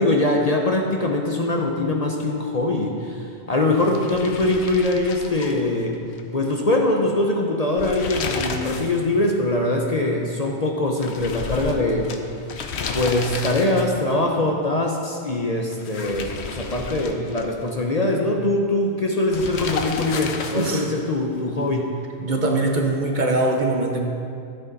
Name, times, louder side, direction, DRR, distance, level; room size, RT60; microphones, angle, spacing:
voice 1, 0.0-6.0 6.3-12.1 12.9-21.9, left 2 dB, 40° left, 1 dB, 0.8 m, -22 dB
sound 1, 3.7-6.2 6.5-6.6 7.6-9.0 9.3-9.4 11.0-14.1 15.7-17.7 19.3-21.0, left 4 dB, 70° left, 1.0 m, -32 dB
voice 2, 20.5-20.9 22.2-24.0, right 2 dB, 45° right, 1 dB, 1.1 m, -22 dB
13.0 x 8.9 x 4.0 m, 2.4 s
omnidirectional pair, 1.2 m